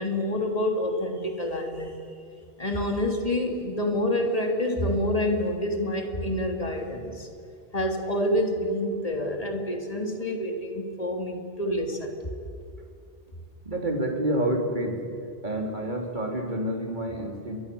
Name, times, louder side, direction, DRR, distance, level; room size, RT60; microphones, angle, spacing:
voice 1, 0.0-1.9 2.6-7.3 7.7-12.2, left 1 dB, 35° left, 3 dB, 3.2 m, -27 dB
voice 2, 13.6-15.0 15.4-17.6, right 1 dB, 45° right, 1 dB, 3.7 m, -28 dB
29.5 x 23.0 x 7.1 m, 2.5 s
omnidirectional pair, 1.1 m